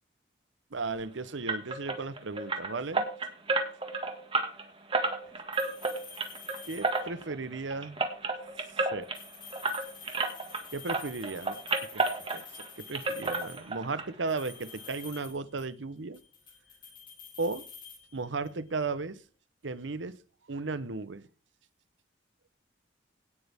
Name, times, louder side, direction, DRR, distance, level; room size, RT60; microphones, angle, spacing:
voice 1, 0.7-3.0 5.1-5.2 6.7-8.0 8.9-9.1 10.7-11.6 11.9-16.2 17.4-17.6 18.1-19.2 19.6-20.2 20.5-21.2, right 3 dB, 90° right, 15 dB, 0.9 m, -35 dB
sound 1, 1.5-10.6 10.9-12.7 12.9-14.0 14.3-14.4 14.9-15.0 15.3-15.4, right 3 dB, 30° right, 1.9 m, -32 dB
sound 2, 5.5-7.3 9.0-13.8 14.3-15.8 16.1-18.6, left 5 dB, 25° left, 3.7 m, -49 dB
17.5 x 8.1 x 3.6 m, 0.37 s
head